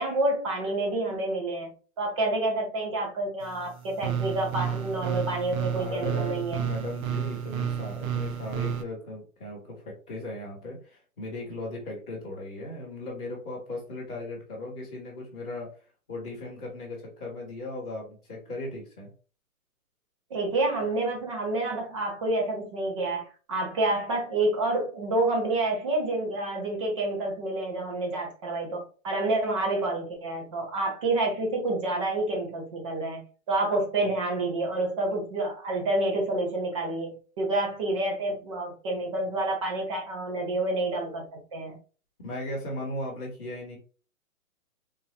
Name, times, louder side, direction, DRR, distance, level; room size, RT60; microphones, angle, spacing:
voice 1, 0.0-6.6 20.3-41.8, right 2 dB, 20° right, 1 dB, 0.8 m, -28 dB
sound 1, 3.4-8.8, right 8 dB, 70° right, 0.7 m, -31 dB
voice 2, 5.7-15.7 16.1-19.1 42.2-43.8, left 1 dB, 5° left, -13 dB, 0.5 m, -37 dB
3.8 x 2.8 x 2.8 m, 0.37 s
hypercardioid pair, 165°, 43 cm